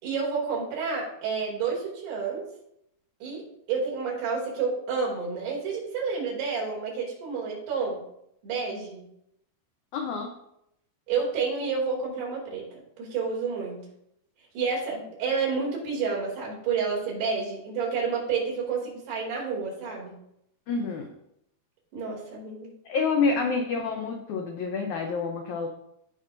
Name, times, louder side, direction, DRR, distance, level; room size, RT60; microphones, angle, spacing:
voice 1, 0.0-2.5 3.2-8.0 8.4-9.0 11.1-13.8 14.5-20.1 21.9-22.7, right 5 dB, 90° right, -4 dB, 4.8 m, -30 dB
voice 2, 9.9-10.3 20.7-21.1 22.8-25.7, left 4 dB, 85° left, 2 dB, 1.7 m, -28 dB
16.0 x 5.4 x 2.6 m, 0.77 s
omnidirectional pair, 4.5 m